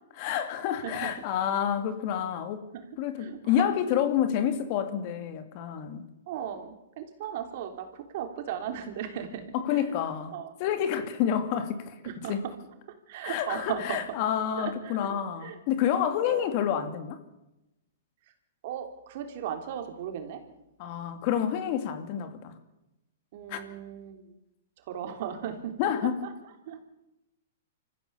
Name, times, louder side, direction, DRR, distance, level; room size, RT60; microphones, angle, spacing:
voice 1, 0.1-2.6 3.0-6.1 9.5-10.3 10.6-11.9 12.3-12.4 13.2-17.2 20.8-22.6 23.5-23.6 25.8-26.2, left 9 dB, 45° left, 2.6 m, -28 dB
voice 2, 3.2-3.7 6.3-9.5 9.7-9.8 10.3-10.5 12.0-12.5 12.9-14.0 14.6-15.6 15.9-16.5 18.6-20.4 23.3-24.3 24.9-25.7 26.0-26.3 26.6-26.9, right 9 dB, 55° right, 3.4 m, -37 dB
25.5 x 14.5 x 7.0 m
hypercardioid pair, 135°, 0 cm